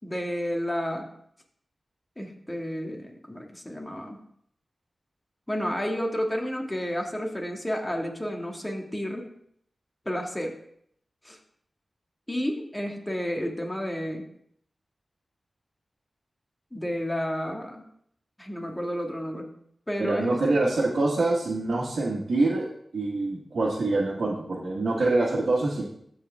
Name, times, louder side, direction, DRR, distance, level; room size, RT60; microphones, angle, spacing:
voice 1, 0.0-1.1 2.2-4.2 5.5-9.3 10.1-10.6 11.2-11.4 12.3-14.3 16.7-17.9 18.4-19.5 19.9-20.4, equal, 20° left, 1 dB, 2.2 m, -31 dB
voice 2, 20.0-22.7 22.9-25.8, right 2 dB, 75° right, -6 dB, 1.6 m, -25 dB
14.5 x 4.9 x 3.6 m, 0.68 s
cardioid pair, 40°, 0 cm